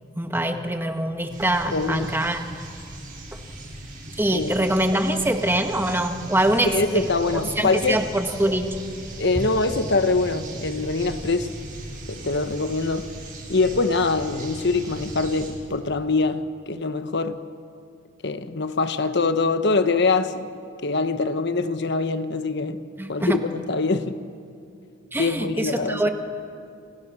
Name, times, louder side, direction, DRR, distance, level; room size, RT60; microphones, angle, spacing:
voice 1, 0.1-2.5 3.3-3.4 4.2-7.1 7.6-8.7 9.3-9.4 23.0-23.4 25.1-26.1, right 1 dB, 10° right, 5 dB, 1.6 m, -24 dB
sound 1, 1.3-15.5, right 1 dB, 45° right, 6.6 m, -38 dB
voice 2, 1.7-2.1 4.3-4.5 6.6-8.0 9.2-11.5 12.1-13.1 13.5-17.4 18.2-20.5 20.8-22.8 23.1-24.2 25.2-26.1, left 3 dB, 60° left, 10 dB, 1.2 m, -24 dB
30.0 x 27.0 x 6.4 m, 2.4 s
head